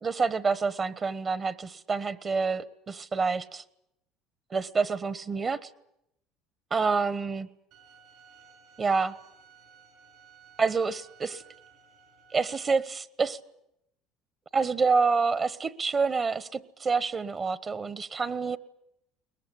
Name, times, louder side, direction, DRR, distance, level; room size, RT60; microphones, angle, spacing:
voice 1, 0.0-3.6 4.5-5.7 6.7-7.5 8.8-9.1 10.6-11.4 12.3-13.4 14.5-18.6, right 4 dB, 35° right, 16 dB, 1.2 m, -27 dB
Bowed string instrument, 7.7-12.7, right 6 dB, 65° right, 6.0 m, -56 dB
22.5 x 20.0 x 10.0 m, 0.79 s
supercardioid pair, 90°, 0 cm